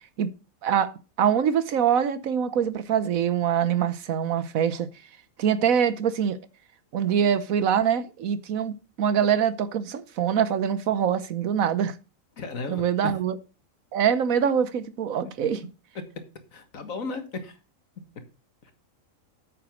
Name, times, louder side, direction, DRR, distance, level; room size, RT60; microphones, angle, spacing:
voice 1, 0.6-0.9 1.2-4.9 5.4-6.4 6.9-12.0 12.7-13.3 13.9-15.6, right 8 dB, 90° right, 1.3 m, -24 dB
voice 2, 12.4-13.2 15.2-15.3 16.5-17.6 18.6-18.7, left 4 dB, 80° left, 2.1 m, -35 dB
8.7 x 6.9 x 6.3 m
omnidirectional pair, 1.4 m